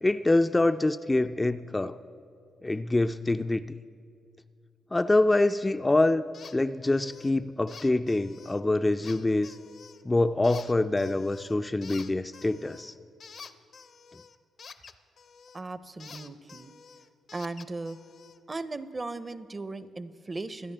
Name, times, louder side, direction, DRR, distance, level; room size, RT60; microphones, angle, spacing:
voice 1, 0.0-2.0 2.6-3.6 4.9-6.2 6.5-9.5 10.0-12.9, left 2 dB, 20° left, 10 dB, 0.3 m, -25 dB
sound 1, 6.3-6.6 6.8-7.3 7.7-8.6 9.0-10.0 10.4-11.5 11.8-15.6 16.0-18.4, left 5 dB, 55° left, 0.6 m, -49 dB
voice 2, 15.5-16.7 17.3-18.0 18.5-20.7, right 3 dB, 30° right, 14 dB, 0.6 m, -37 dB
24.5 x 9.4 x 3.4 m, 2.3 s
supercardioid pair, 65°, 0 cm